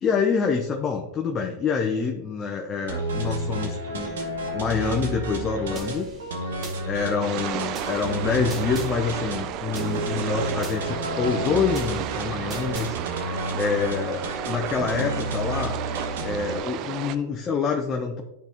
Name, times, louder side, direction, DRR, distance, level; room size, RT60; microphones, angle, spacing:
voice 1, 0.0-4.2 4.5-6.1 6.8-13.0 13.6-15.8 16.2-18.2, left 6 dB, 30° left, 2 dB, 0.7 m, -26 dB
sound 1, 2.9-16.6, right 2 dB, 85° right, 1.4 m, -31 dB
sound 2, 5.8-6.8 7.7-8.9 9.7-10.8 11.7-12.9, right 3 dB, 25° right, 1.8 m, -41 dB
sound 3, 7.2-17.2, right 11 dB, 50° right, 0.4 m, -33 dB
10.5 x 4.2 x 3.0 m, 0.98 s
hypercardioid pair, 110°, 0 cm